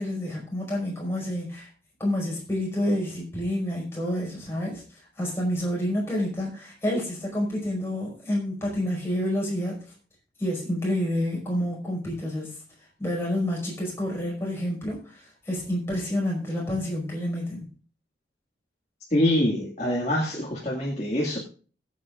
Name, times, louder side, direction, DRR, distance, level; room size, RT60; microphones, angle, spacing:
voice 1, 0.0-1.7 2.0-4.8 5.2-9.8 10.4-12.6 13.0-17.6, left 1 dB, 15° left, -3 dB, 5.2 m, -28 dB
voice 2, 19.1-21.4, left 1 dB, 40° left, -3 dB, 2.0 m, -25 dB
21.0 x 8.3 x 2.5 m, 0.39 s
head